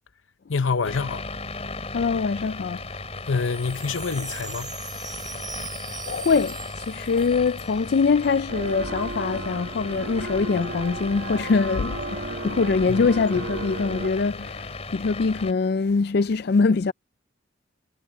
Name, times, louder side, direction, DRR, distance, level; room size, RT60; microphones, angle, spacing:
voice 1, 0.5-1.2 3.3-4.7 12.9-13.0, left 4 dB, 85° left, 0.8 m, -26 dB
sound 1, 0.8-15.5, left 3 dB, 35° left, 3.4 m, -36 dB
voice 2, 1.9-2.8 6.0-16.9, left 4 dB, 55° left, 0.4 m, -23 dB
Wind chime, 3.2-8.4 8.7-8.8 9.0-9.4, right 6 dB, 20° right, 4.5 m, -41 dB
sound 2, 8.5-14.1, right 2 dB, 65° right, 1.5 m, -34 dB
head